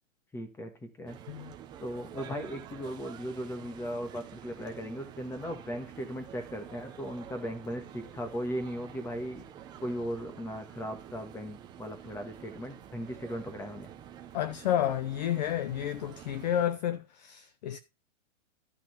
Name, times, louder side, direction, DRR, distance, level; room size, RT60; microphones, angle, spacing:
voice 1, 0.3-1.2 1.8-9.4 9.8-13.9, equal, 5° left, 1.4 m, -37 dB
sound 1, 1.1-16.7, right 10 dB, 10° right, 0.7 m, -48 dB
voice 2, 14.3-17.8, left 11 dB, 35° left, 0.5 m, -31 dB
12.0 x 5.8 x 4.2 m
hypercardioid pair, 160°, 39 cm